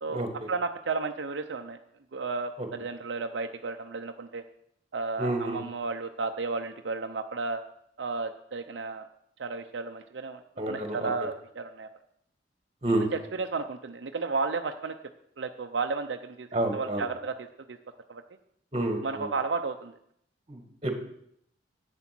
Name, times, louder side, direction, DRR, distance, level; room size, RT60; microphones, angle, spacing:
voice 1, 0.0-1.8 2.1-4.4 4.9-7.6 8.0-9.1 9.4-11.9 13.3-15.0 15.4-16.5 16.7-17.8 18.1-18.2 19.0-20.0, right 4 dB, 75° right, 6 dB, 0.6 m, -33 dB
voice 2, 5.2-5.6 10.6-11.1 12.8-13.1 16.5-17.0 18.7-19.3 20.5-21.0, right 1 dB, 35° right, 5 dB, 1.9 m, -29 dB
11.0 x 8.0 x 6.0 m, 0.72 s
head